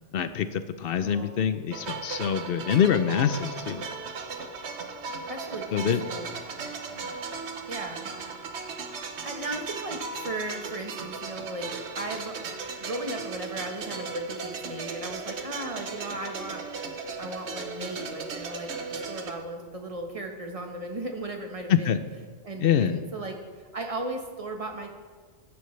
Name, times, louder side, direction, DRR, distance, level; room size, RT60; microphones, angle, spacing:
voice 1, 0.1-3.9 5.7-6.0 7.0-7.1 21.7-22.0 22.6-23.0, left 8 dB, 60° left, 12 dB, 0.7 m, -25 dB
voice 2, 1.0-1.4 5.3-6.3 7.7-8.1 9.2-12.3 12.8-16.6 17.2-21.9 22.4-23.4 23.7-24.9, right 2 dB, 30° right, 3 dB, 1.2 m, -36 dB
sound 1, 1.7-19.3, right 4 dB, 65° right, 1.2 m, -37 dB
15.0 x 10.5 x 3.2 m, 1.5 s
omnidirectional pair, 1.2 m